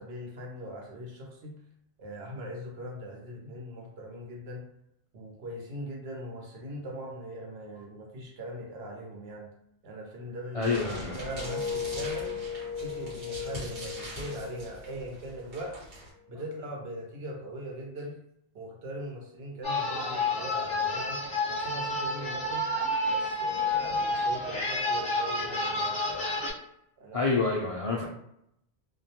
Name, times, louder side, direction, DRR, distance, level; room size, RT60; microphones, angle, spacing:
voice 1, 0.0-1.6 2.0-4.7 5.1-9.5 9.8-12.4 12.8-15.8 16.3-18.2 18.5-21.2 21.5-22.7 23.1-26.3 27.0-27.4, equal, 70° right, 0 dB, 0.9 m, -40 dB
voice 2, 10.5-11.2 27.1-28.0, left 4 dB, 65° left, -5 dB, 0.3 m, -27 dB
sound 1, 10.5-15.5 15.9-16.2, left 6 dB, 30° right, 0.4 m, -38 dB
sound 2, 10.6-16.1, right 1 dB, 50° right, 1.1 m, -42 dB
sound 3, 19.6-26.5, left 2 dB, 5° left, 1.0 m, -29 dB
2.2 x 2.1 x 2.8 m, 0.75 s
omnidirectional pair, 1.1 m